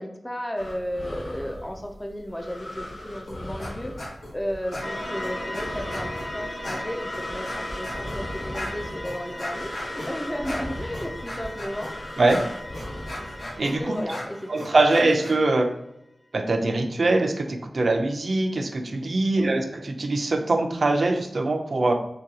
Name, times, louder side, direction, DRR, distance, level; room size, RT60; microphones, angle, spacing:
voice 1, 0.0-11.9 13.8-14.7 19.4-19.7, equal, 10° left, 3 dB, 0.4 m, -34 dB
sound 1, 0.6-13.9, left 1 dB, 55° left, 0.6 m, -39 dB
sound 2, 3.3-3.7 4.0-4.3 4.7-6.3 6.6-15.3, left 1 dB, 75° left, 1.0 m, -38 dB
sound 3, 4.8-15.5, left 1 dB, 30° left, 1.0 m, -37 dB
voice 2, 13.6-13.9 14.5-15.7 16.3-21.9, right 2 dB, 60° right, 5 dB, 0.4 m, -22 dB
3.8 x 2.2 x 2.7 m, 0.82 s
wide cardioid pair, 90°, 0 cm